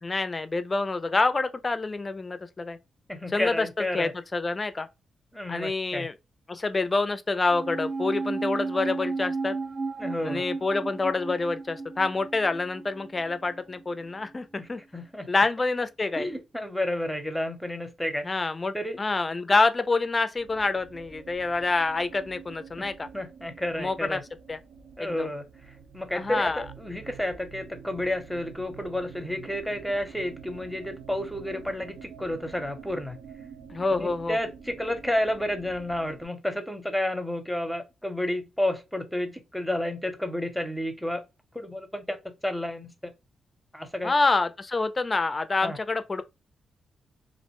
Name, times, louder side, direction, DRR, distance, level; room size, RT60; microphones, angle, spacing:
voice 1, 0.0-2.8 3.3-4.9 5.5-6.1 6.5-9.6 10.2-14.8 15.3-16.3 18.2-23.1 23.8-24.2 24.5-24.6 25.0-25.3 26.1-26.6 33.7-34.4 44.0-46.2, left 3 dB, 35° left, 0.4 m, -27 dB
voice 2, 3.1-4.1 5.3-6.1 10.0-10.4 14.6-15.3 16.2-18.3 18.7-19.0 22.8-22.9 23.1-24.2 25.0-33.2 33.9-41.2 41.5-43.1 43.7-44.1 45.6-45.8, left 1 dB, 5° left, 0.7 m, -31 dB
sound 1, 7.5-14.1 14.3-14.4, right 3 dB, 35° right, 0.5 m, -34 dB
sound 2, 20.4-36.3, right 6 dB, 80° right, 0.6 m, -47 dB
2.5 x 2.1 x 2.9 m
supercardioid pair, 55°, 0 cm